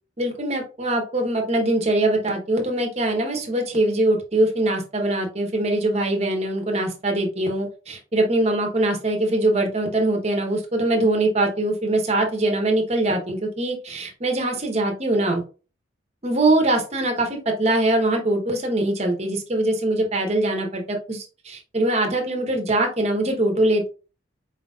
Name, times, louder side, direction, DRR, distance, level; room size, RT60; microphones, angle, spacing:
voice 1, 0.2-15.4 16.2-23.9, right 1 dB, 35° right, 3 dB, 0.9 m, -22 dB
4.4 x 3.9 x 2.3 m, 0.34 s
head